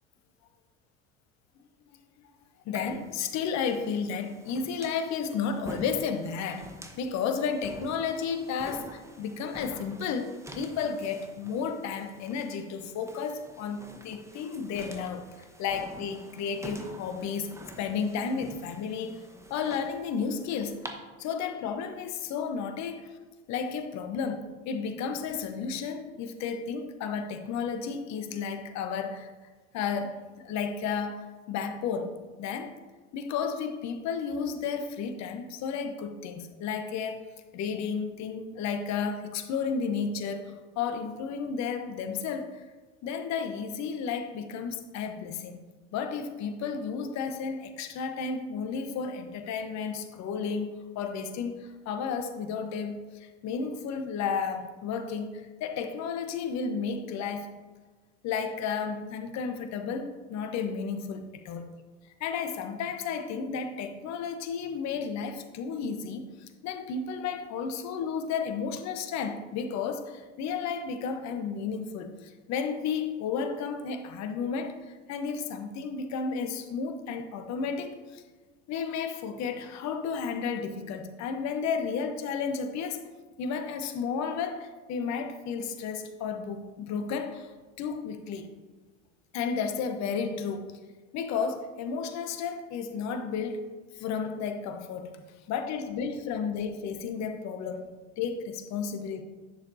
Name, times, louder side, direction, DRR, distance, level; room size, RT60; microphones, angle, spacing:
voice 1, 2.6-15.3 15.6-19.2 19.5-20.8 21.2-23.2 23.5-29.3 29.7-32.7 33.1-37.3 37.5-42.6 43.0-45.6 45.9-57.5 58.2-61.7 62.2-78.2 78.7-83.0 83.4-87.5 87.8-88.5 89.3-90.8 91.1-93.7 93.9-95.2 95.5-97.9 98.2-99.2, left 6 dB, 50° left, 7 dB, 1.1 m, -33 dB
sound 1, 2.7-20.9, right 1 dB, 10° right, 1.1 m, -47 dB
10.5 x 6.7 x 2.7 m, 1.3 s
hypercardioid pair, 75°, 35 cm